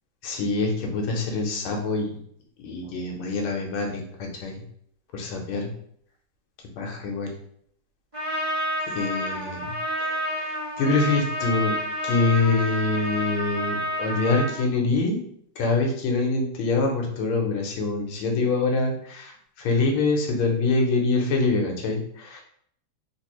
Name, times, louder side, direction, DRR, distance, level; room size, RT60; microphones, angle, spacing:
voice 1, 0.2-2.1 2.6-4.6 5.1-5.7 6.8-7.3 8.9-11.8 12.0-15.2 15.6-22.4, left 3 dB, 85° left, 1 dB, 1.6 m, -25 dB
Trumpet, 8.1-14.6, equal, 25° right, 0.7 m, -29 dB
3.7 x 2.6 x 2.9 m, 0.67 s
omnidirectional pair, 2.3 m